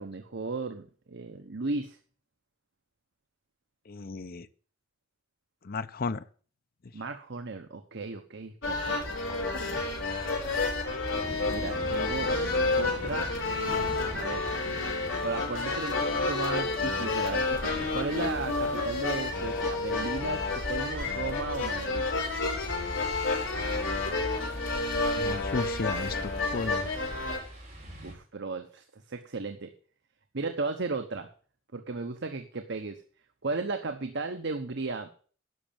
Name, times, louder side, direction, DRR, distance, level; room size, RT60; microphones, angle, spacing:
voice 1, 0.0-2.0 6.9-9.0 11.5-12.3 12.7-13.3 14.1-14.5 15.2-22.0 28.0-29.7 30.3-31.3 31.7-33.0 33.4-35.1, right 3 dB, 60° right, 6 dB, 1.0 m, -35 dB
voice 2, 3.9-4.5 5.6-6.2 25.1-26.9, left 3 dB, 50° left, 12 dB, 0.7 m, -34 dB
sound 1, 8.6-27.4, left 3 dB, 70° left, 4.9 m, -30 dB
sound 2, 11.1-28.1, right 1 dB, 40° right, 6.0 m, -45 dB
11.0 x 6.3 x 8.7 m, 0.43 s
head